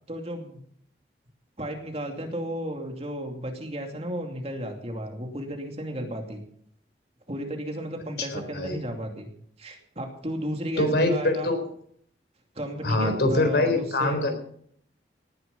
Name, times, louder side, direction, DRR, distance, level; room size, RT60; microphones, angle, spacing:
voice 1, 0.1-0.6 1.6-6.4 7.3-9.3 9.6-11.5 12.5-14.2, equal, 35° right, 3 dB, 2.6 m, -34 dB
voice 2, 8.2-8.8 10.8-11.6 12.8-14.3, left 2 dB, 65° left, 6 dB, 4.0 m, -24 dB
18.5 x 11.0 x 5.5 m, 0.64 s
head